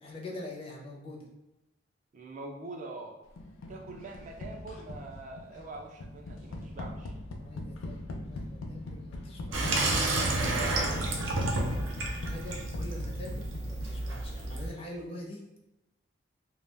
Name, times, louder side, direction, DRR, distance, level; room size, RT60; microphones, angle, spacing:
voice 1, 0.0-1.3 7.4-10.0 10.8-15.4, left 1 dB, 30° left, 0 dB, 0.5 m, -45 dB
voice 2, 2.1-3.2 3.7-7.1, right 2 dB, 40° right, 1 dB, 0.3 m, -44 dB
sound 1, 3.4-14.2, left 1 dB, 90° left, 0.4 m, -41 dB
Water tap faucet / Sink (filling or washing), 9.5-14.7, right 2 dB, 85° right, 0.6 m, -30 dB
2.2 x 2.1 x 3.3 m, 0.97 s
head